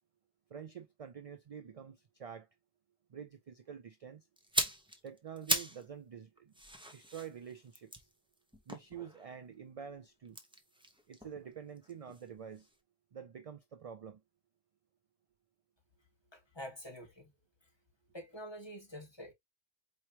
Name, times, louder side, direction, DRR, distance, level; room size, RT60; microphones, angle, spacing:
voice 1, 0.5-2.5 3.1-4.2 5.0-6.5 6.9-8.1 8.7-10.4 11.1-12.7 13.1-14.2, right 7 dB, 50° right, 0.4 m, -47 dB
sound 1, 4.4-5.9 6.2-9.4 10.2-12.3 12.6-12.7, right 1 dB, 5° right, 0.7 m, -38 dB
voice 2, 16.3-17.3 18.1-19.3, equal, 25° left, 1.6 m, -47 dB
4.6 x 3.1 x 2.8 m
omnidirectional pair, 1.1 m